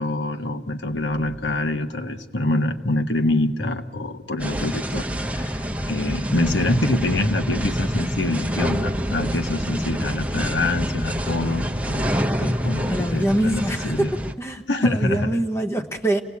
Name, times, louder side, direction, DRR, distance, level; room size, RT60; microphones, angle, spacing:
voice 1, 0.0-14.1 14.7-15.3, left 2 dB, 85° left, 6 dB, 1.5 m, -25 dB
sound 1, 4.4-14.3, equal, 10° right, 0.9 m, -26 dB
voice 2, 12.9-16.2, right 1 dB, 15° left, 6 dB, 1.1 m, -24 dB
28.5 x 18.0 x 8.6 m, 1.1 s
head